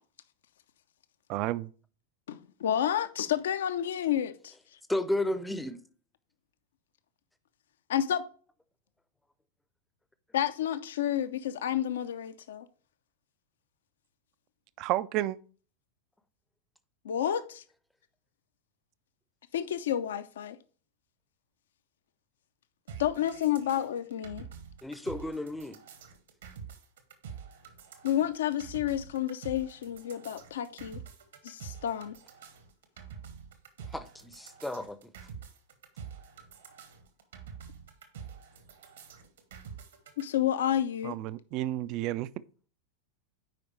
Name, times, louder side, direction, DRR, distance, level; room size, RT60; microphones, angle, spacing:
voice 1, 1.3-1.7 14.8-15.4 41.0-42.3, right 15 dB, 40° right, 0.4 m, -31 dB
voice 2, 2.3-4.5 7.9-8.3 10.3-12.7 17.0-17.6 19.5-20.6 23.0-24.5 28.0-31.0 31.4-32.2 40.2-41.1, left 10 dB, 60° left, 0.5 m, -30 dB
voice 3, 4.9-5.8 24.8-25.8 33.9-35.1, left 1 dB, 5° left, 0.6 m, -33 dB
sound 1, 22.9-40.2, right 7 dB, 65° right, 1.3 m, -47 dB
9.0 x 5.0 x 3.1 m
figure-of-eight pair, 90°, 0 cm